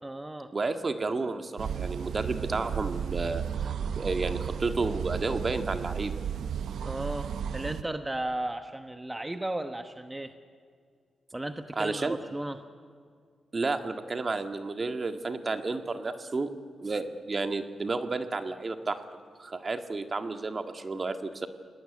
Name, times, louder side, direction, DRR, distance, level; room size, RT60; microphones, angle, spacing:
voice 1, 0.0-0.5 6.8-10.3 11.3-12.6, right 1 dB, 15° right, 7 dB, 1.2 m, -35 dB
voice 2, 0.5-6.2 11.8-12.2 13.5-16.5 16.8-19.0 19.4-21.5, right 3 dB, 40° right, 7 dB, 1.7 m, -31 dB
sound 1, 1.6-7.8, right 8 dB, 85° right, 0.7 m, -33 dB
29.0 x 18.5 x 9.7 m, 2.1 s
cardioid pair, 80°, 0 cm